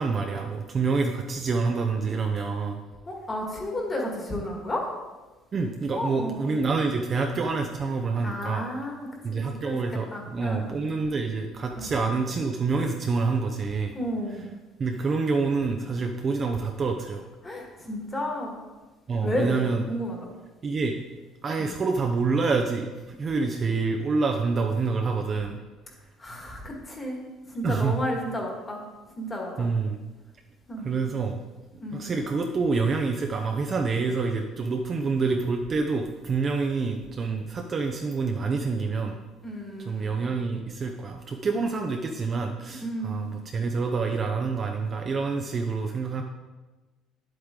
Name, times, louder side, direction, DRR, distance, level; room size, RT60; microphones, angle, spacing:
voice 1, 0.0-2.8 5.5-8.7 9.2-13.9 14.8-17.2 19.1-19.8 20.6-20.9 21.4-25.6 27.6-28.0 29.6-30.0 30.8-31.4 31.9-39.2 39.9-46.2, right 4 dB, 25° right, 3 dB, 0.6 m, -27 dB
voice 2, 3.1-4.9 5.9-6.6 7.3-7.4 8.2-9.8 10.1-10.8 11.7-11.9 13.9-14.4 17.4-18.5 19.2-20.3 21.6-21.7 26.2-28.8 29.2-29.7 30.7-30.9 31.8-32.0 39.4-40.3 42.8-43.3, left 1 dB, 15° left, 0 dB, 1.6 m, -32 dB
10.0 x 8.0 x 3.7 m, 1.2 s
cardioid pair, 175°, 0 cm